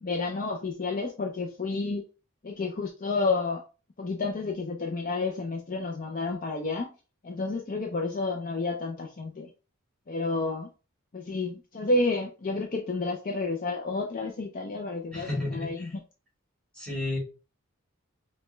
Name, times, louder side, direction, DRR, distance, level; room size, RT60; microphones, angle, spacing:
voice 1, 0.0-2.0 2.4-3.6 4.0-6.9 7.2-9.5 10.1-10.7 11.1-16.0, left 3 dB, 40° left, 2 dB, 0.4 m, -30 dB
voice 2, 15.1-15.9 16.8-17.2, left 2 dB, 5° left, -3 dB, 1.7 m, -32 dB
5.2 x 2.2 x 3.1 m, 0.33 s
head